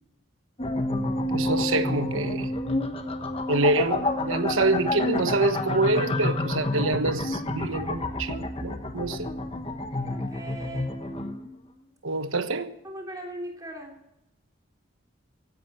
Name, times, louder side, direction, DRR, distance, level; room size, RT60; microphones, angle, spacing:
sound 1, 0.6-11.5, left 1 dB, 30° left, 1.2 m, -29 dB
voice 1, 1.3-2.5 3.5-9.3 12.0-12.7, right 2 dB, 80° right, 1.2 m, -26 dB
voice 2, 9.9-11.3 12.8-14.0, right 1 dB, 20° right, 3.6 m, -40 dB
16.0 x 11.0 x 6.9 m
head